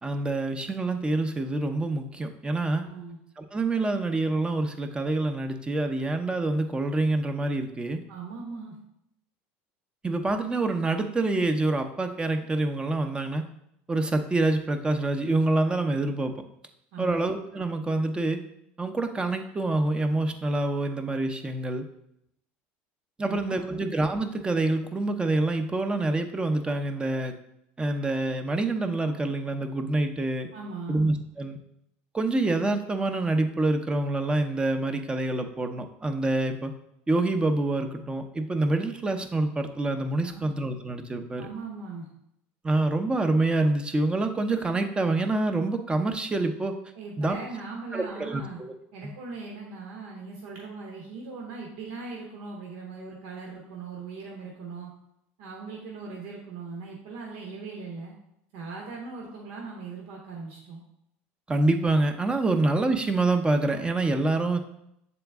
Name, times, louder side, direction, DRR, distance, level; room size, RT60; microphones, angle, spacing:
voice 1, 0.0-2.8 3.4-8.0 10.0-13.4 13.9-16.3 17.0-18.4 18.8-21.8 23.2-27.3 27.8-30.5 30.9-31.6 32.1-36.7 37.1-41.5 42.6-46.7 47.2-47.4 47.9-48.4 61.5-64.6, right 2 dB, 15° right, 6 dB, 0.6 m, -26 dB
voice 2, 2.8-3.2 8.1-8.8 16.9-17.2 23.2-23.8 30.5-31.0 40.2-40.5 41.4-42.1 46.9-48.6 48.9-54.9 55.4-58.1 58.5-60.8, right 4 dB, 80° right, -1 dB, 1.1 m, -39 dB
6.8 x 4.0 x 3.5 m, 0.77 s
supercardioid pair, 110°, 6 cm